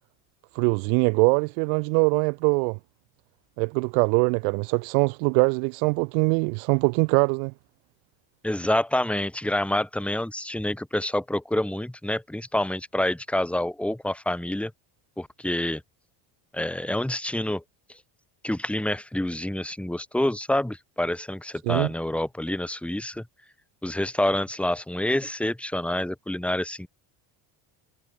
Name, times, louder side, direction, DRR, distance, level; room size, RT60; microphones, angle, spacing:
voice 1, 0.5-2.8 3.6-7.5 21.7-21.9, right 40 dB or more, 85° right, 1.2 m, -22 dB
voice 2, 8.4-14.7 15.2-15.8 16.5-17.6 18.4-23.2 23.8-26.9, left 1 dB, 5° left, 2.2 m, -27 dB
cardioid pair, 130°, 46 cm